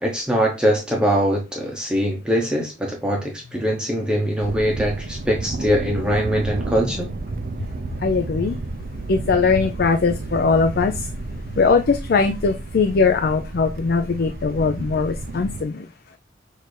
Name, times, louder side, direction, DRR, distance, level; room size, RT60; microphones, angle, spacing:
voice 1, 0.0-7.1, equal, 5° right, 0.8 m, -22 dB
Thunder, 4.4-15.6, right 2 dB, 50° right, 0.4 m, -31 dB
voice 2, 8.0-8.6 9.1-10.9 11.6-15.8, left 4 dB, 55° left, 0.4 m, -20 dB
6.3 x 2.6 x 3.2 m
head